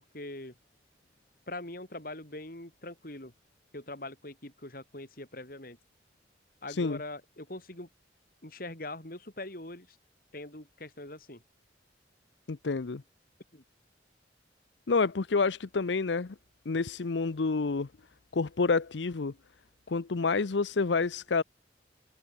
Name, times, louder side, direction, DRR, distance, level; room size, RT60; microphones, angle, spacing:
voice 1, 0.1-0.5 1.5-3.3 3.7-5.8 6.6-7.9 8.4-10.0 10.3-11.4 13.5-13.6, left 2 dB, 55° left, 4.9 m, -42 dB
voice 2, 6.7-7.0 12.5-13.0 14.9-16.3 16.7-17.9 18.3-19.3 19.9-21.4, left 4 dB, 90° left, 0.7 m, -28 dB
head